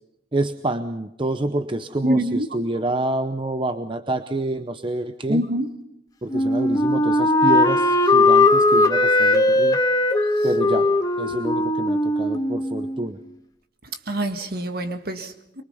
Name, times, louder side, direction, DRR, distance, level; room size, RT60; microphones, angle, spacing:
voice 1, 0.3-5.4 6.2-9.8 10.4-10.9 11.2-13.2, right 1 dB, 25° right, 9 dB, 0.8 m, -27 dB
voice 2, 2.0-2.5 5.3-5.7 14.1-15.6, right 1 dB, 55° right, 7 dB, 1.8 m, -25 dB
Wind instrument woodwind instrument, 6.3-13.1, left 2 dB, 20° left, 1.5 m, -19 dB
24.0 x 22.5 x 5.5 m, 0.82 s
head